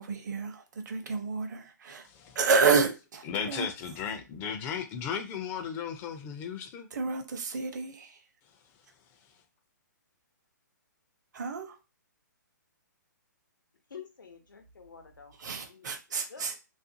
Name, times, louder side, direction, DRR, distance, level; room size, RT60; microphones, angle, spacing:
voice 1, 0.0-2.1 2.3-3.7 6.9-8.2 11.3-11.8 15.4-16.6, right 5 dB, 65° right, 0.7 m, -29 dB
voice 2, 2.1-2.4 3.3-6.9, left 7 dB, 20° left, 0.4 m, -35 dB
voice 3, 13.9-16.6, left 6 dB, 90° left, 0.8 m, -50 dB
2.5 x 2.4 x 2.6 m
hypercardioid pair, 140°, 10 cm